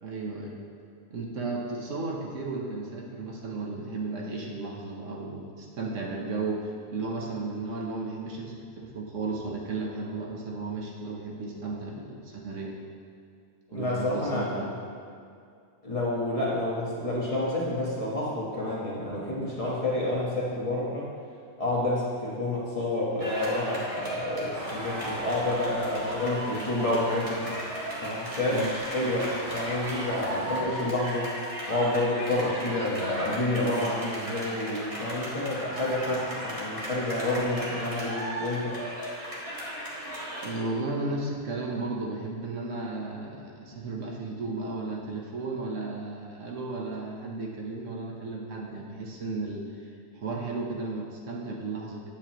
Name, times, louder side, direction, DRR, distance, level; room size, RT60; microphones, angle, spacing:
voice 1, 0.0-0.5 1.1-12.8 13.7-14.7 28.5-28.8 40.4-49.7 50.1-52.1, right 3 dB, 70° right, -1 dB, 1.2 m, -34 dB
voice 2, 13.7-14.7 15.8-21.1 21.6-27.4 28.0-31.3 31.7-38.8, left 1 dB, 25° left, -6 dB, 1.3 m, -29 dB
sound 1, 23.2-40.5, equal, 25° right, 1.5 m, -36 dB
sound 2, 24.5-30.6, right 1 dB, 50° right, 1.9 m, -41 dB
8.8 x 7.4 x 3.0 m, 2.4 s
omnidirectional pair, 1.4 m